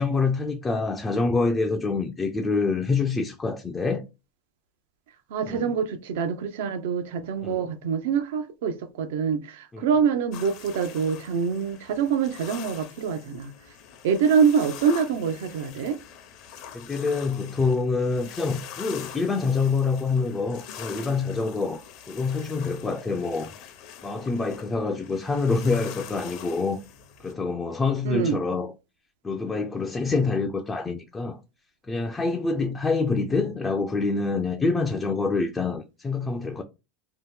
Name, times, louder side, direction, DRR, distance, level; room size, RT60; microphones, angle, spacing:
voice 1, 0.0-4.0 5.5-5.7 7.4-7.7 9.7-9.9 16.7-21.8 22.1-23.5 24.0-26.8 27.2-28.7 29.2-31.4 31.9-36.6, left 4 dB, 15° left, 0.3 m, -26 dB
voice 2, 5.3-13.5 14.0-16.0 28.0-28.4, right 6 dB, 85° right, 0.5 m, -25 dB
sound 1, 10.3-27.3, left 9 dB, 55° left, 0.6 m, -44 dB
2.8 x 2.1 x 3.5 m
supercardioid pair, 145°, 0 cm